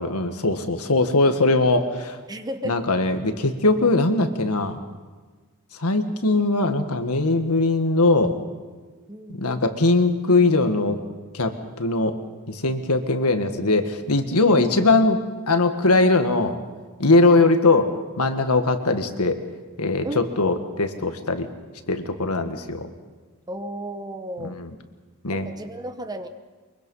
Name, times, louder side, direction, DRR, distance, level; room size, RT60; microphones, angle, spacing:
voice 1, 0.0-2.2 2.7-4.8 5.8-8.4 9.4-11.0 11.3-12.2 12.5-15.2 15.5-16.6 17.0-17.9 18.2-19.4 19.8-21.5 21.9-22.9 24.4-24.7 25.2-25.5, left 2 dB, 80° left, 7 dB, 1.8 m, -20 dB
voice 2, 2.3-2.8 9.1-9.4 20.0-20.3 20.7-20.8 23.5-24.6 25.3-26.3, equal, 15° right, 8 dB, 1.0 m, -33 dB
24.0 x 23.0 x 5.6 m, 1.4 s
head